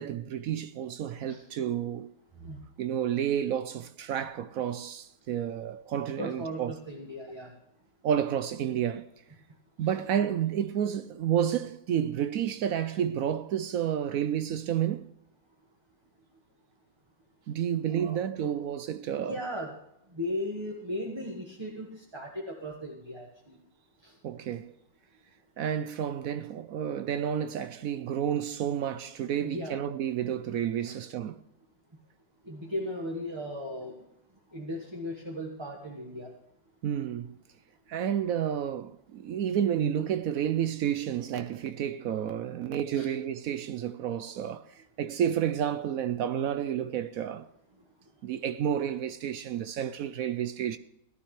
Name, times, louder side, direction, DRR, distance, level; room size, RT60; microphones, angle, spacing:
voice 1, 0.0-2.1 2.8-6.7 8.0-9.1 9.8-15.0 17.5-19.4 24.2-24.7 25.6-31.4 36.8-37.3 37.9-47.5 48.2-50.8, right 9 dB, 70° right, 0.8 m, -30 dB
voice 2, 6.2-7.5 9.8-9.9 17.9-18.5 19.3-19.7 20.1-23.6 24.0-24.1 29.4-29.8 30.8-31.0 32.4-33.9 34.5-36.3 42.9-43.1, left 1 dB, 15° right, 1.4 m, -37 dB
17.0 x 12.0 x 3.3 m
omnidirectional pair, 1.9 m